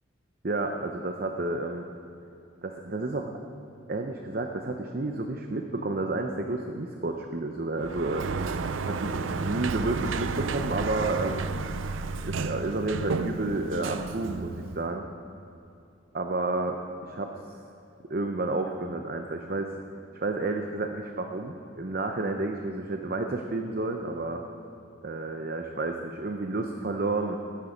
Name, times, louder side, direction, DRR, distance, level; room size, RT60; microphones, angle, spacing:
voice 1, 0.4-1.8 2.6-3.3 3.9-8.3 8.8-11.5 12.2-15.1 16.1-17.3 18.1-19.7 20.1-24.4 25.0-27.4, right 2 dB, 50° right, 4 dB, 0.8 m, -31 dB
Sliding door, 7.8-14.9, right 4 dB, 85° right, 0.6 m, -32 dB
20.0 x 10.5 x 5.2 m, 2.7 s
head